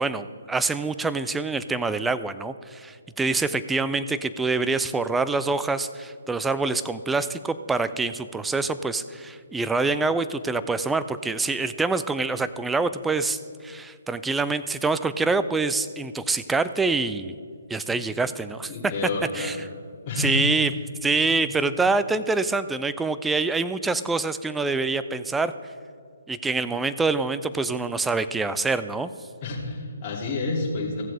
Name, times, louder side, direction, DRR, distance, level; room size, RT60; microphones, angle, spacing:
voice 1, 0.0-17.3 17.7-18.7 19.3-19.6 20.2-20.7 21.0-25.5 26.3-29.1, right 3 dB, 5° right, 12 dB, 0.3 m, -25 dB
voice 2, 18.6-19.6 20.0-20.6 29.4-31.0, left 2 dB, 30° left, -4 dB, 2.8 m, -29 dB
16.5 x 7.3 x 3.5 m, 2.2 s
hypercardioid pair, 150°, 0 cm